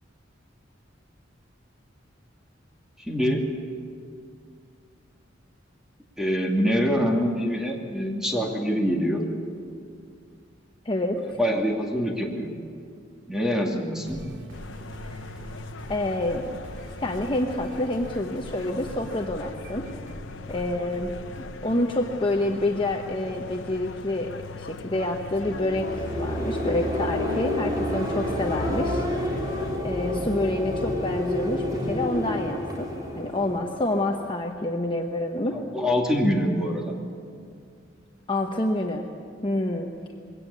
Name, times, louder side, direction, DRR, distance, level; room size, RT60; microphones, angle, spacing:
voice 1, 3.1-3.5 6.2-9.3 11.3-12.5 13.3-14.2 35.5-36.9, equal, 5° right, 0 dB, 2.6 m, -25 dB
voice 2, 10.8-11.2 15.9-16.4 17.0-19.9 20.5-21.1 21.6-24.3 24.6-29.0 29.8-32.9 33.1-35.6 38.3-39.1 39.4-39.9, left 1 dB, 25° left, 2 dB, 1.1 m, -27 dB
sound 1, 14.0-21.7, right 1 dB, 70° right, 2.3 m, -43 dB
sound 2, 14.5-29.8, left 4 dB, 80° left, 0.8 m, -41 dB
sound 3, 25.2-34.2, left 1 dB, 20° right, 4.1 m, -29 dB
22.0 x 17.5 x 8.5 m, 2.2 s
head